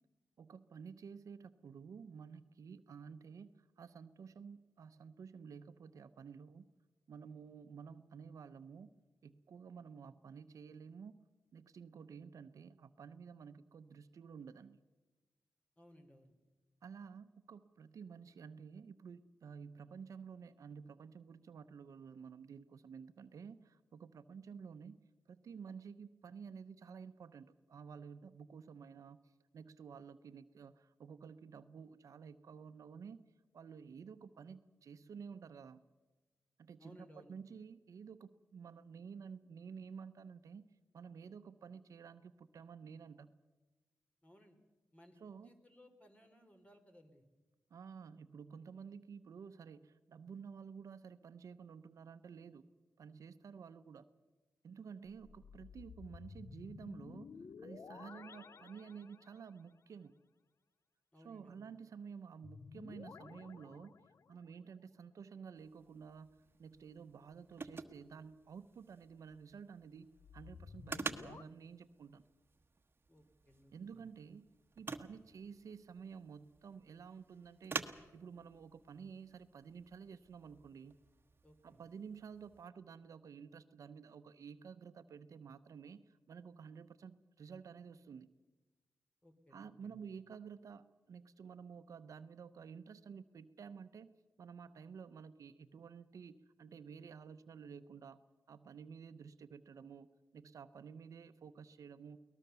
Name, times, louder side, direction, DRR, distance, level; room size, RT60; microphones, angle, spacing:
voice 1, 0.4-6.7 7.1-8.9 9.2-11.2 11.5-14.8 16.8-25.0 25.3-33.2 33.5-35.8 36.6-40.7 40.9-43.3 45.2-45.5 47.7-52.7 53.0-54.1 54.6-57.3 57.6-60.2 61.2-63.9 64.3-72.2 73.7-74.5 74.8-77.8 78.1-81.0 81.6-88.3 89.5-94.1 94.4-98.2 98.5-100.1 100.3-102.2, right 6 dB, 80° right, 12 dB, 0.9 m, -52 dB
voice 2, 15.8-16.3 36.8-37.4 44.2-44.6 44.9-47.2 61.1-61.7 73.1-74.0 81.4-81.8 89.2-90.0, equal, 25° left, 6 dB, 3.6 m, -62 dB
sound 1, 55.0-59.6 62.4-64.5 70.1-71.4, left 5 dB, 55° left, 0.6 m, -54 dB
sound 2, 65.6-82.7, right 4 dB, 40° right, 1.3 m, -50 dB
22.5 x 19.0 x 6.9 m, 1.2 s
cardioid pair, 70°, 6 cm